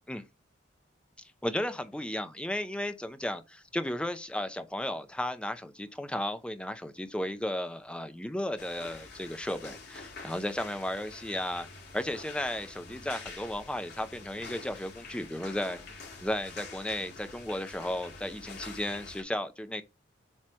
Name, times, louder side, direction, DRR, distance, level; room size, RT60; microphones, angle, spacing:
voice 1, 1.4-11.7 11.9-19.8, left 1 dB, 5° left, 0.5 m, -34 dB
sound 1, 8.6-19.2, left 3 dB, 55° left, 2.1 m, -46 dB
7.5 x 3.2 x 4.2 m
head